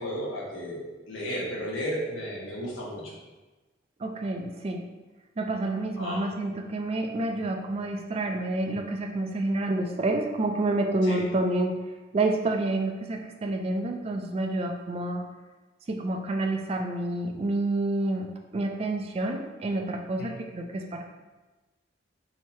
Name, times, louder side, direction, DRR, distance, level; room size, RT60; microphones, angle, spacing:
voice 1, 0.0-3.1 6.0-6.2 11.0-11.2 20.2-20.3, equal, 85° left, -5 dB, 1.2 m, -33 dB
voice 2, 4.0-4.9 5.4-11.8 12.1-15.2 15.9-21.0, right 2 dB, 30° right, 3 dB, 0.3 m, -28 dB
3.0 x 2.8 x 4.4 m, 1.2 s
head